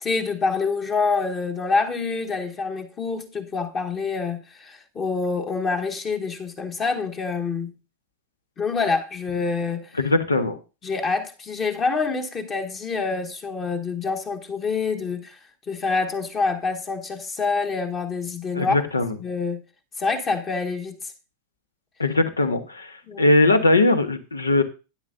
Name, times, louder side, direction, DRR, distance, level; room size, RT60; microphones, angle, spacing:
voice 1, 0.0-7.7 8.6-9.9 10.8-15.4 15.7-18.8 19.2-19.6 20.0-21.1 23.1-23.2, left 4 dB, 25° left, 1.2 m, -26 dB
voice 2, 10.0-10.6 18.5-19.1 22.0-24.6, left 2 dB, 75° left, 1.1 m, -20 dB
11.5 x 9.7 x 2.6 m
figure-of-eight pair, 90°, 0 cm